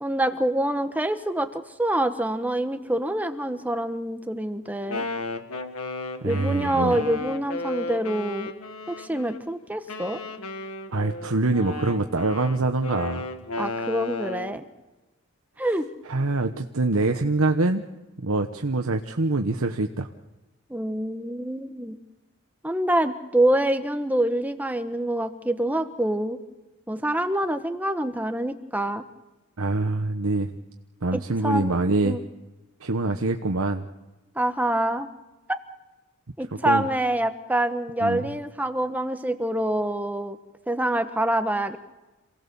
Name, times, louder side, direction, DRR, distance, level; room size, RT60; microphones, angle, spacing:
voice 1, 0.0-5.1 6.2-8.5 8.9-10.2 13.6-14.6 15.6-15.9 20.7-22.0 22.6-26.4 26.9-29.0 31.1-31.7 32.0-32.2 34.3-35.1 35.5-35.6 36.4-40.4 40.7-41.8, right 1 dB, 5° right, 8 dB, 1.3 m, -26 dB
Wind instrument woodwind instrument, 4.7-9.4 9.9-14.6, left 2 dB, 90° left, 1.9 m, -34 dB
voice 2, 6.2-7.0 10.9-13.3 16.1-17.8 18.2-20.1 29.6-30.5 31.0-32.2 32.8-33.8 36.6-36.9 38.0-38.3, right 2 dB, 75° right, 5 dB, 1.2 m, -24 dB
27.5 x 18.0 x 7.1 m, 1.1 s
head